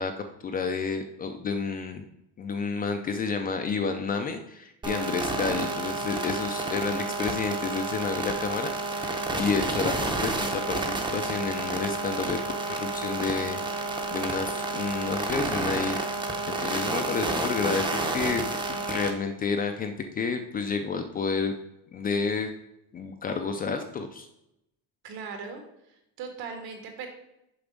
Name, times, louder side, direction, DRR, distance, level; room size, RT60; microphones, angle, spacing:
voice 1, 0.0-2.0 2.4-12.4 12.7-13.6 14.1-16.0 16.5-21.5 21.9-22.5 22.9-24.3, left 5 dB, 25° left, 6 dB, 0.3 m, -30 dB
sound 1, 4.8-19.1, right 2 dB, 10° right, 0.6 m, -30 dB
voice 2, 25.0-25.6 25.9-27.1, right 5 dB, 65° right, 4 dB, 1.8 m, -39 dB
6.9 x 5.0 x 5.1 m, 0.84 s
cardioid pair, 160°, 38 cm